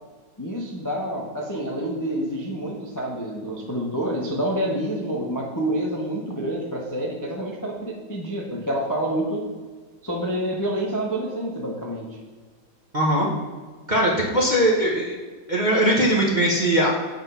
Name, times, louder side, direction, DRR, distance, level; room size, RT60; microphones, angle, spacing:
voice 1, 0.4-9.4 10.0-12.2, right 1 dB, 15° left, -2 dB, 0.6 m, -28 dB
voice 2, 12.9-13.3 13.9-15.1 15.5-16.9, right 1 dB, 35° right, -3 dB, 0.9 m, -20 dB
7.8 x 4.3 x 5.6 m, 1.4 s
omnidirectional pair, 2.0 m